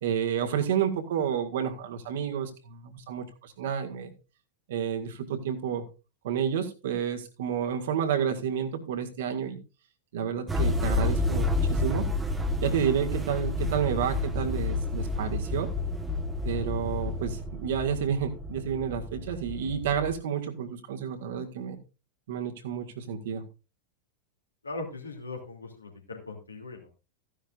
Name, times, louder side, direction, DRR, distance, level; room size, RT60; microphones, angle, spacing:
voice 1, 0.0-4.1 4.7-5.8 6.2-9.6 10.1-12.1 12.6-15.7 16.4-21.8 22.3-23.4, right 8 dB, 55° right, 5 dB, 1.8 m, -30 dB
sound 1, 10.5-20.1, left 2 dB, 10° right, 1.3 m, -30 dB
voice 2, 24.6-26.9, left 2 dB, 80° left, 2 dB, 2.7 m, -39 dB
15.0 x 10.0 x 2.5 m, 0.31 s
figure-of-eight pair, 90°, 0 cm